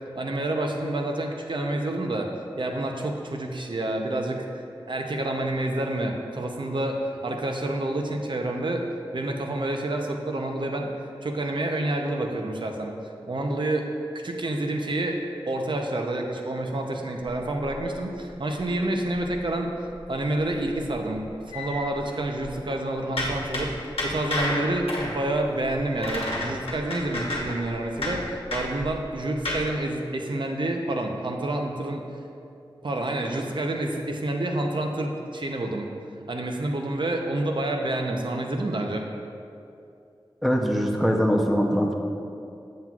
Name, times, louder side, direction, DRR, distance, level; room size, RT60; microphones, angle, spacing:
voice 1, 0.1-2.3 2.6-8.8 9.1-10.9 11.2-13.0 13.3-13.9 14.2-15.2 15.5-19.7 20.1-21.3 21.5-23.7 24.0-32.1 32.8-35.9 36.3-39.0, right 1 dB, 55° right, 2 dB, 0.7 m, -28 dB
sound 1, 17.2-19.6 19.9-20.2 20.4-22.7 23.2-29.7, left 1 dB, 80° left, 1.1 m, -32 dB
voice 2, 40.4-41.9, equal, ahead, 1 dB, 0.6 m, -22 dB
7.5 x 7.3 x 2.4 m, 2.6 s
wide cardioid pair, 70°, 10 cm